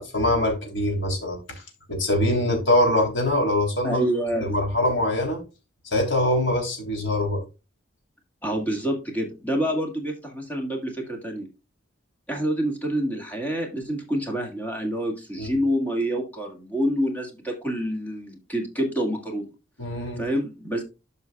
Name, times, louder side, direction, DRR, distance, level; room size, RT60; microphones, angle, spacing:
voice 1, 0.0-1.4 1.9-4.0 4.4-5.4 5.8-7.4 15.4-15.5 19.8-20.3, left 1 dB, 75° left, 3.5 m, -23 dB
voice 2, 3.8-4.5 8.4-11.5 12.3-19.5 20.2-20.8, equal, 10° left, 1.9 m, -27 dB
13.0 x 5.5 x 2.3 m
head